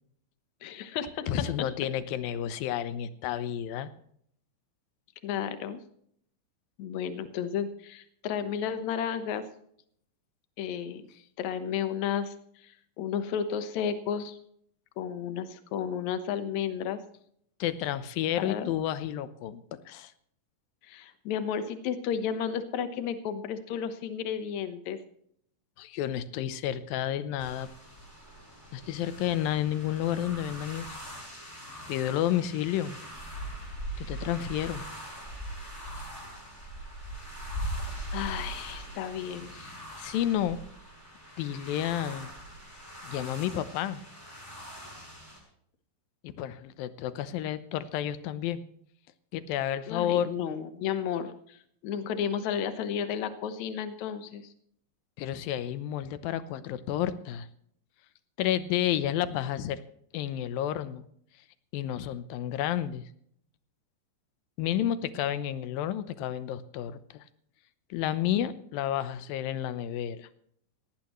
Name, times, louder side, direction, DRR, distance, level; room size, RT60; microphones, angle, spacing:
voice 1, 0.6-1.3 5.2-5.8 6.8-9.5 10.6-11.1 11.4-12.3 12.6-14.4 15.0-17.0 18.4-18.7 20.8-25.0 38.1-39.8 49.9-51.6 51.8-54.5, left 8 dB, 65° left, 10 dB, 2.2 m, -33 dB
voice 2, 1.3-3.9 17.6-20.1 25.8-27.7 28.7-30.9 31.9-33.0 34.0-34.8 40.0-40.6 41.4-42.3 43.0-44.0 46.2-48.6 49.3-50.3 55.2-57.5 58.4-59.8 60.1-61.1 61.7-63.0 64.6-67.3 67.9-70.3, left 11 dB, 90° left, 13 dB, 2.7 m, -31 dB
sound 1, 27.4-45.4, right 1 dB, 5° left, 6.7 m, -41 dB
17.5 x 17.5 x 3.1 m, 0.67 s
omnidirectional pair, 4.0 m